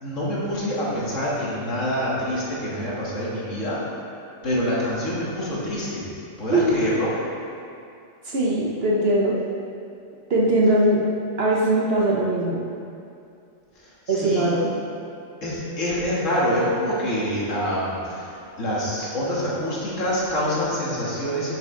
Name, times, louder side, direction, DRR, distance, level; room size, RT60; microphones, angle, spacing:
voice 1, 0.0-3.8 4.4-6.1 6.4-7.1 13.8-14.5 15.4-21.5, equal, 80° left, -6 dB, 2.0 m, -26 dB
voice 2, 8.2-9.4 10.3-11.1 11.4-12.6 14.1-14.7, right 1 dB, 55° right, -3 dB, 1.1 m, -20 dB
7.9 x 6.6 x 3.7 m, 2.5 s
omnidirectional pair, 1.3 m